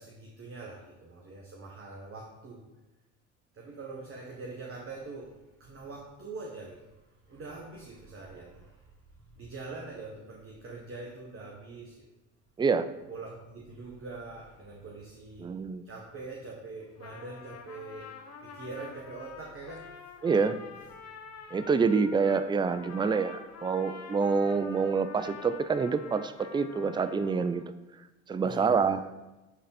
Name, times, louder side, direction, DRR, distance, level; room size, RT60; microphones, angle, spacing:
voice 1, 0.0-2.7 3.5-12.1 13.1-15.5 15.8-18.1 18.4-20.1 20.8-20.9 21.3-21.4 28.4-29.0, right 3 dB, 35° right, -1 dB, 1.4 m, -44 dB
voice 2, 15.4-15.8 20.2-20.5 21.5-27.6 28.3-29.0, right 5 dB, 15° right, 12 dB, 0.4 m, -27 dB
Trumpet, 16.8-27.7, left 6 dB, 45° left, 1.1 m, -47 dB
9.9 x 4.0 x 4.1 m, 1.0 s
hypercardioid pair, 65°, 36 cm